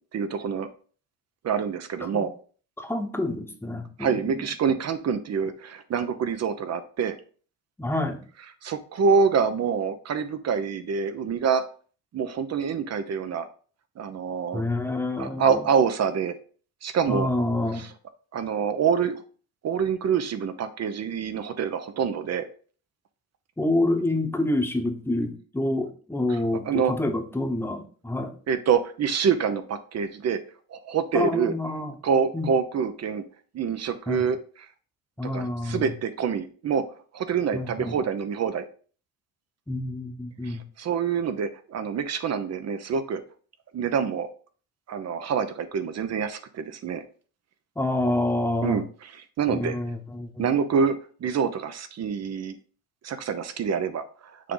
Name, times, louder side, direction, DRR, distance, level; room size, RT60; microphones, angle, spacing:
voice 1, 0.1-0.7 1.4-2.3 4.0-7.2 8.6-11.6 12.1-13.5 14.0-14.6 15.2-16.4 16.8-17.3 17.8-17.9 18.3-19.2 19.6-22.4 26.3-26.4 26.6-26.9 28.5-30.4 30.7-31.5 32.0-33.2 33.5-34.4 35.3-36.8 37.1-38.6 40.4-43.2 43.7-44.3 44.9-47.0 48.6-48.8 49.1-49.8 50.4-51.0 51.2-52.6 53.0-54.5, right 6 dB, 45° right, 10 dB, 0.9 m, -26 dB
voice 2, 2.8-4.5 7.8-8.2 14.5-15.7 17.1-17.8 23.6-28.3 31.1-31.9 32.3-32.5 34.1-34.3 35.2-35.9 37.5-38.0 39.7-40.6 47.8-48.8 49.5-50.5, left 1 dB, 5° left, 4 dB, 1.1 m, -27 dB
6.6 x 3.8 x 3.8 m, 0.41 s
cardioid pair, 105°, 35 cm